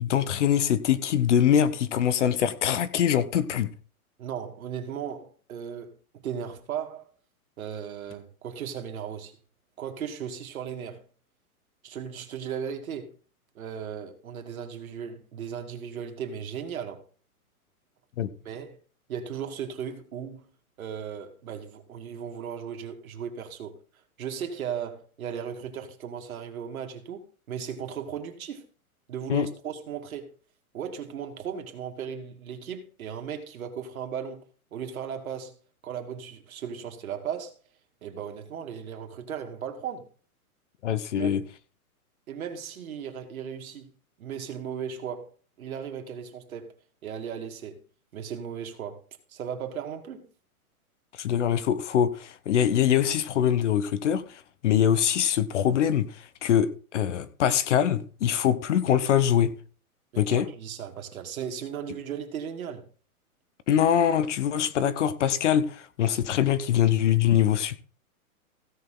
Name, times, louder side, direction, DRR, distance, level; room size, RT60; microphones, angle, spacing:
voice 1, 0.0-3.7 18.2-18.3 29.3-29.5 40.8-41.4 51.1-59.5 60.2-60.5 63.7-67.8, left 9 dB, 55° left, 1.0 m, -23 dB
voice 2, 4.2-7.1 7.6-9.4 9.8-11.0 11.8-13.1 13.5-17.0 18.4-18.8 19.1-20.5 20.8-23.8 24.2-28.7 29.1-30.3 30.7-34.4 34.7-35.5 35.8-37.5 38.0-40.1 41.2-41.3 42.3-43.9 44.2-45.3 45.6-46.7 47.0-47.8 48.1-49.0 49.3-50.3 60.1-62.9, right 8 dB, 70° right, 2.5 m, -36 dB
16.0 x 6.7 x 3.9 m
hypercardioid pair, 165°, 44 cm